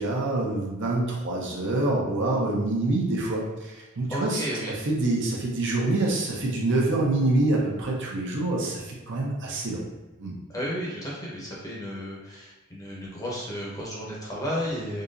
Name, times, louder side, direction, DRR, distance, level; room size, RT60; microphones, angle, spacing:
voice 1, 0.0-4.4 4.8-9.8 10.2-10.4, right 2 dB, 60° right, -2 dB, 0.7 m, -26 dB
voice 2, 4.1-4.7 10.5-15.0, equal, 15° left, -5 dB, 0.8 m, -33 dB
3.7 x 2.9 x 2.5 m, 1.1 s
head